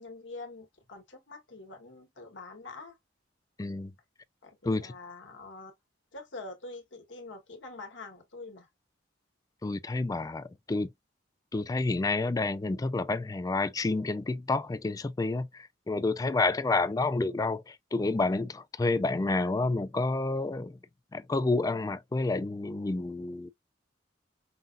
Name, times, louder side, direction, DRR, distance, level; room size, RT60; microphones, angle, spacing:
voice 1, 0.0-3.0 4.4-5.7 6.1-8.7, left 3 dB, 70° left, 1.5 m, -45 dB
voice 2, 3.6-3.9 4.6-4.9 9.6-10.9 11.5-20.8 21.1-23.5, left 3 dB, 20° left, 0.3 m, -29 dB
5.6 x 2.6 x 2.5 m
head